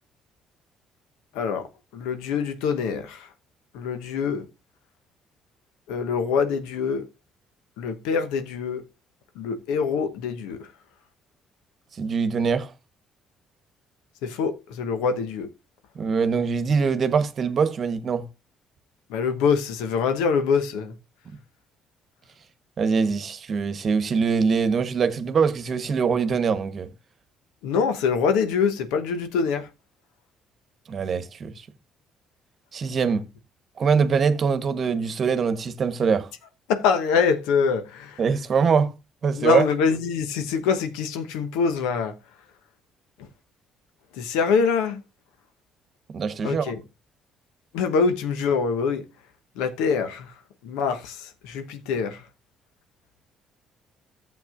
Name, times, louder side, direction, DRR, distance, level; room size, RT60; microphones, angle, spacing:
voice 1, 1.3-3.3 3.7-4.5 5.9-7.1 7.8-8.8 9.3-10.7 14.2-15.5 19.1-21.0 27.6-29.7 36.7-38.2 39.4-42.2 43.2-43.3 44.1-45.0 46.4-46.8 47.7-49.0 49.6-50.4 50.6-52.3, left 5 dB, 75° left, 1.0 m, -24 dB
voice 2, 12.0-12.7 16.0-18.3 22.8-26.9 30.9-31.5 32.7-33.3 33.8-36.3 38.2-38.9 39.2-39.6 46.1-46.7, right 5 dB, 50° right, 1.1 m, -23 dB
14.5 x 7.5 x 2.5 m
hypercardioid pair, 55°, 0 cm